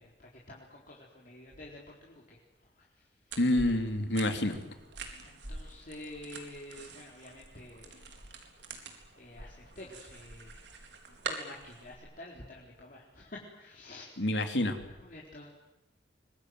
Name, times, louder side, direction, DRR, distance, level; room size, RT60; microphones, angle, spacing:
voice 1, 0.0-2.4 2.8-2.9 5.2-8.0 9.2-10.7 11.1-14.1 15.0-15.5, left 1 dB, 50° left, -3 dB, 4.1 m, -49 dB
sound 1, 3.3-11.9, right 3 dB, 85° right, 4.2 m, -45 dB
voice 2, 3.4-4.6 14.2-14.8, left 1 dB, 80° left, 6 dB, 3.2 m, -28 dB
25.0 x 21.0 x 9.4 m, 0.90 s
head